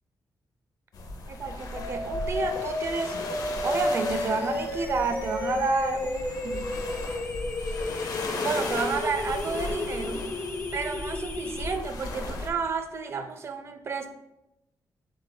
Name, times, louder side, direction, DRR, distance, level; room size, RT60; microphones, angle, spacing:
sound 1, 0.9-12.5, left 2 dB, 65° left, 0.7 m, -37 dB
voice 1, 1.3-3.3 3.6-6.7 8.4-10.2 10.7-14.1, right 4 dB, 40° right, 8 dB, 0.4 m, -30 dB
sound 2, 1.8-11.8, left 2 dB, 25° left, 0.5 m, -32 dB
7.2 x 3.3 x 2.2 m, 0.89 s
wide cardioid pair, 180°, 7 cm